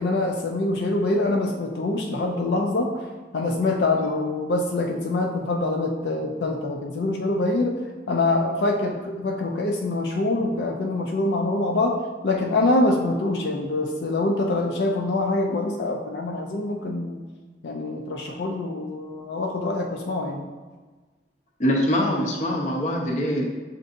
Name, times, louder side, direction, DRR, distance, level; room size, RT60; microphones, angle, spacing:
voice 1, 0.0-3.1 3.3-7.8 8.1-17.2 17.6-20.5, left 2 dB, 75° left, 1 dB, 0.4 m, -25 dB
voice 2, 21.6-23.4, equal, 45° left, -1 dB, 0.7 m, -23 dB
7.5 x 2.6 x 2.6 m, 1.3 s
head